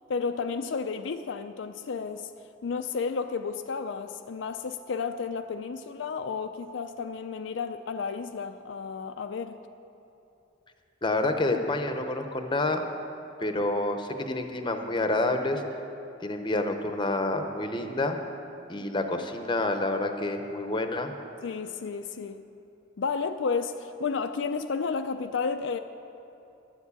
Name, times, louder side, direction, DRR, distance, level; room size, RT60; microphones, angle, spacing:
voice 1, 0.1-2.3 2.6-9.6 21.4-22.4 23.0-25.8, left 5 dB, 70° left, 0.4 m, -32 dB
voice 2, 11.0-12.8 13.4-15.6 16.2-18.2 18.7-21.1, left 2 dB, 25° left, 0.8 m, -28 dB
12.5 x 7.2 x 8.3 m
head